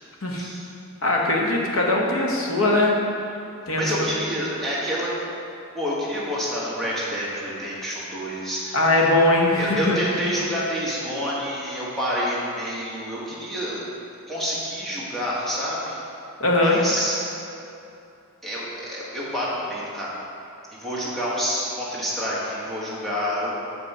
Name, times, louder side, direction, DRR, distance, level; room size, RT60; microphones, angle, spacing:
voice 1, 1.0-3.0 3.7-3.9 8.7-10.0 16.4-16.8, left 2 dB, 65° left, -1 dB, 1.1 m, -20 dB
voice 2, 3.8-5.1 5.7-9.0 9.6-13.8 14.3-16.0 16.6-17.2 18.4-20.1 20.8-23.5, equal, ahead, -8 dB, 1.5 m, -28 dB
6.3 x 5.4 x 5.4 m, 2.7 s
head